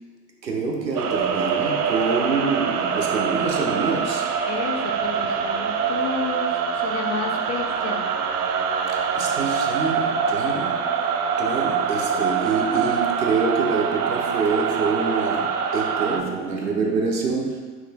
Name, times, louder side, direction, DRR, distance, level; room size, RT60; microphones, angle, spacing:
voice 1, 0.4-4.3 8.9-11.0 11.4-17.6, right 4 dB, 80° right, 1 dB, 1.1 m, -26 dB
sound 1, 0.9-16.2, right 6 dB, 65° right, 0.7 m, -24 dB
voice 2, 4.5-8.1, left 5 dB, 45° left, 2 dB, 1.0 m, -31 dB
9.8 x 5.8 x 2.2 m, 1.5 s
figure-of-eight pair, 85°, 50 cm